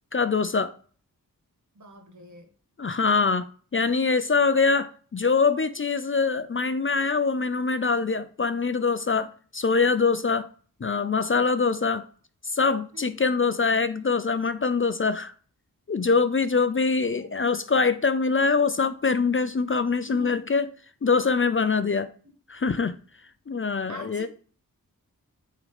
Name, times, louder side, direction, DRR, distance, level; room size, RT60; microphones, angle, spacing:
voice 1, 0.1-0.7 2.8-10.5 10.8-12.0 12.5-15.3 15.9-20.7 21.0-22.1 22.5-22.9 23.5-24.3, left 4 dB, 35° left, 0.5 m, -24 dB
voice 2, 1.7-2.5 12.9-13.1 16.7-16.9 17.2-17.3 20.1-20.4 23.9-24.3, equal, 55° right, 1.6 m, -44 dB
8.4 x 3.8 x 3.3 m
cardioid pair, 45°, 35 cm